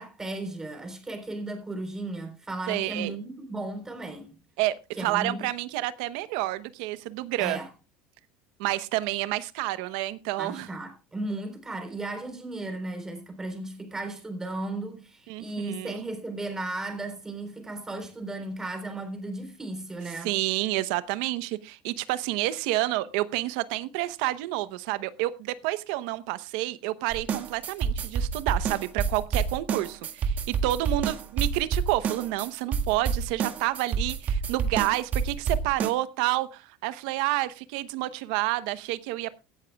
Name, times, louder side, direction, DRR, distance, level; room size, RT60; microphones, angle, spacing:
voice 1, 0.0-4.4 5.0-5.5 7.4-7.7 10.4-20.3, right 2 dB, 10° right, 3.8 m, -35 dB
voice 2, 2.7-3.1 4.6-7.6 8.6-10.7 15.3-16.1 20.2-39.3, right 17 dB, 75° right, 0.9 m, -29 dB
sound 1, 27.1-35.9, right 6 dB, 35° right, 1.8 m, -28 dB
17.5 x 13.0 x 2.3 m
supercardioid pair, 135°, 4 cm